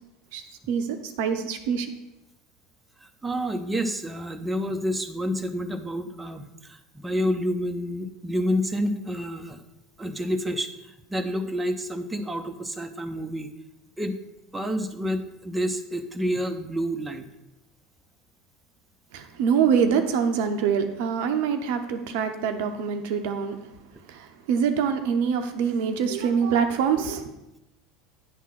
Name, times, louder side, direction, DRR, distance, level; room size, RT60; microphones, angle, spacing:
voice 1, 0.3-1.9 19.1-23.6 24.1-27.3, right 7 dB, 65° right, 7 dB, 0.7 m, -25 dB
voice 2, 3.0-9.6 10.0-10.7 11.1-13.5 14.0-14.2 14.5-17.3, equal, 10° right, 6 dB, 0.7 m, -29 dB
9.4 x 3.7 x 6.0 m, 0.93 s
figure-of-eight pair, 75°, 0 cm